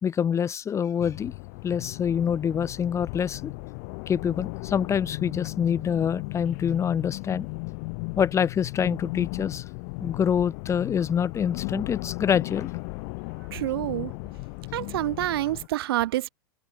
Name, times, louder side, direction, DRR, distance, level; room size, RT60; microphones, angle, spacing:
voice 1, 0.0-1.4 1.6-3.5 4.1-7.5 8.2-9.6 10.0-12.7, left 8 dB, 20° left, 1.1 m, -26 dB
sound 1, 1.0-15.7, left 38 dB, 55° left, 1.2 m, -36 dB
voice 2, 13.5-14.1 14.7-16.3, right 15 dB, 70° right, 1.6 m, -27 dB
open air
hypercardioid pair, 120°, 13 cm